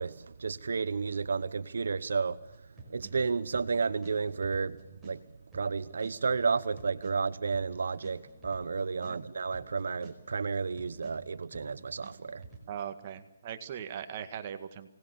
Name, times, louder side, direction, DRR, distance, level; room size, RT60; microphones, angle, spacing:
voice 1, 0.0-2.4 2.9-5.2 5.5-12.4, right 5 dB, 75° right, 1.0 m, -32 dB
sound 1, 2.5-12.6, right 4 dB, 5° right, 4.7 m, -52 dB
voice 2, 12.7-14.9, right 8 dB, 30° right, 1.9 m, -40 dB
26.0 x 19.0 x 6.8 m
hypercardioid pair, 170°, 0 cm